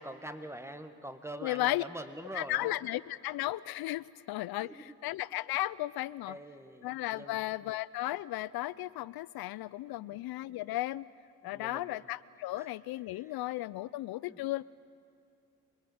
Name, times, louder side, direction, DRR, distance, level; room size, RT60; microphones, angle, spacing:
voice 1, 0.0-2.8 4.6-5.0 6.3-7.5 10.0-10.2 11.4-12.0 12.6-12.7 13.2-13.4 14.3-14.4, right 1 dB, 5° right, 8 dB, 1.8 m, -45 dB
voice 2, 1.4-1.8 2.3-6.4 6.8-11.1 11.4-14.6, left 16 dB, 70° left, 18 dB, 0.5 m, -35 dB
27.0 x 20.0 x 7.9 m, 2.5 s
supercardioid pair, 60°, 39 cm